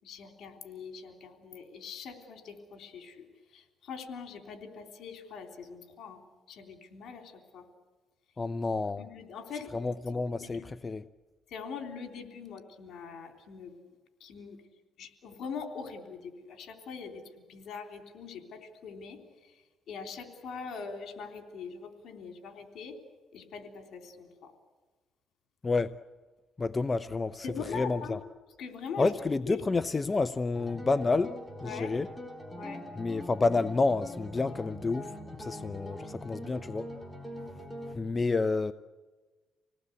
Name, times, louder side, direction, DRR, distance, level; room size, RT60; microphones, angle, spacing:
voice 1, 0.0-3.3 3.5-6.2 6.5-7.6 9.0-9.7 10.4-10.6 11.5-13.8 14.2-14.6 15.0-17.2 17.5-19.2 19.9-23.0 23.3-24.5 27.4-28.2 28.6-29.1 29.5-29.6 31.6-31.9 32.6-32.8, left 6 dB, 70° left, 3.5 m, -42 dB
voice 2, 8.4-9.1 9.7-11.0 25.6-26.0 26.6-28.2 29.0-32.1 33.0-36.9 37.9-38.7, left 3 dB, 30° left, 0.6 m, -29 dB
sound 1, 30.5-37.9, equal, ahead, 3.7 m, -43 dB
27.0 x 18.5 x 8.2 m
cardioid pair, 90°, 0 cm